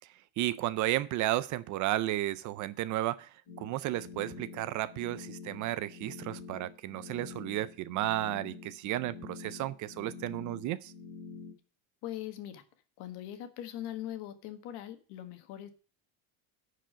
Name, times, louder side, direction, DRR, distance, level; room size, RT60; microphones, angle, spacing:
voice 1, 0.4-10.9, right 15 dB, 45° right, 0.4 m, -33 dB
sound 1, 3.5-11.5, left 5 dB, 40° left, 4.0 m, -47 dB
voice 2, 12.0-12.6 13.0-15.7, left 12 dB, 60° left, 1.7 m, -41 dB
10.0 x 4.9 x 6.2 m
cardioid pair, 155°, 45 cm